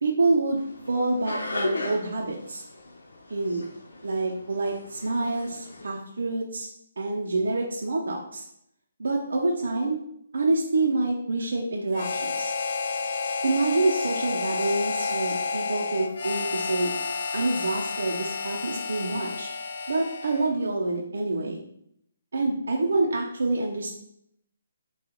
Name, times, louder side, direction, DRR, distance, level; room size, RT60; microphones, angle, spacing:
voice 1, 0.0-2.6 3.3-3.6 4.0-6.7 7.0-8.5 9.0-10.0 10.3-12.5 13.4-16.9 17.3-19.5 19.9-21.6 22.3-23.9, right 2 dB, 85° right, -2 dB, 0.7 m, -27 dB
sound 1, 0.6-5.9, left 2 dB, 85° left, 0.8 m, -36 dB
Harmonica, 11.9-20.6, left 4 dB, 45° left, 0.3 m, -30 dB
6.1 x 2.4 x 3.0 m, 0.75 s
hypercardioid pair, 175°, 0 cm